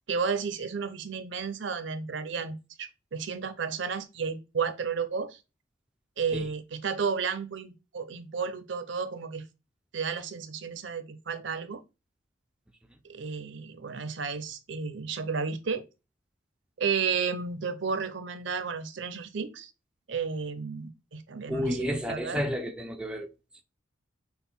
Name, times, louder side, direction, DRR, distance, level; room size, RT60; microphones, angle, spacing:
voice 1, 0.1-5.4 6.2-9.4 9.9-11.8 13.0-15.9 16.8-19.7 20.1-22.4, right 5 dB, 65° right, 0.6 m, -32 dB
voice 2, 21.5-23.3, equal, 5° right, 0.4 m, -31 dB
5.9 x 2.1 x 3.6 m
head